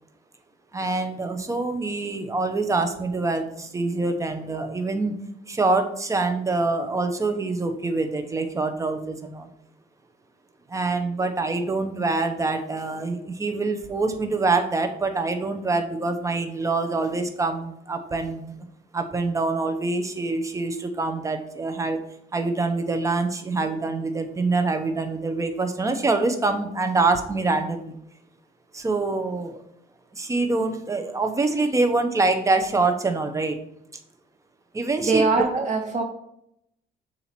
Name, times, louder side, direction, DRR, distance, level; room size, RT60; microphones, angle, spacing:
voice 1, 0.7-5.1 5.5-9.5 10.7-18.5 18.9-22.0 22.3-27.9 28.7-29.6 30.1-33.6 34.7-35.2 35.5-35.7, right 3 dB, 20° right, 7 dB, 0.9 m, -25 dB
voice 2, 35.0-36.0, right 3 dB, 50° right, -2 dB, 1.3 m, -22 dB
7.0 x 2.8 x 5.9 m, 0.76 s
cardioid pair, 110°, 17 cm